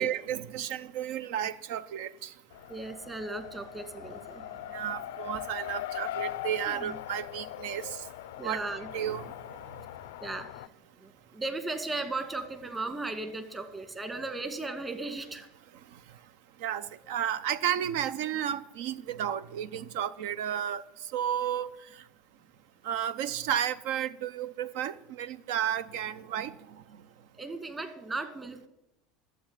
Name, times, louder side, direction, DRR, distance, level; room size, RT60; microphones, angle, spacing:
voice 1, 0.0-2.3 4.7-7.8 8.4-8.6 8.9-9.2 16.6-20.8 21.1-21.7 22.8-26.5, right 10 dB, 70° right, 0.6 m, -32 dB
Race car auto racing, 2.5-10.7, left 13 dB, 75° left, 0.4 m, -40 dB
voice 2, 2.7-4.4 6.7-7.0 8.4-8.9 10.2-10.7 11.0-15.5 27.3-28.7, right 2 dB, 20° right, 2.3 m, -36 dB
12.0 x 8.1 x 8.3 m
hypercardioid pair, 85°, 0 cm